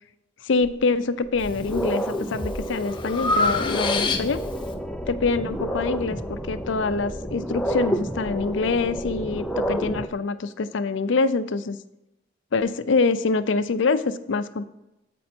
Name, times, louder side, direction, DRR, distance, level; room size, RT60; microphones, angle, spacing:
voice 1, 0.4-4.4 5.1-11.8 12.5-14.6, left 4 dB, 75° left, 12 dB, 0.5 m, -25 dB
sound 1, 0.6-0.7 1.3-10.1, equal, 5° left, 0.4 m, -30 dB
Breathing, 1.4-1.9 2.4-4.6, left 3 dB, 25° left, 0.8 m, -26 dB
8.3 x 5.3 x 4.4 m, 0.92 s
head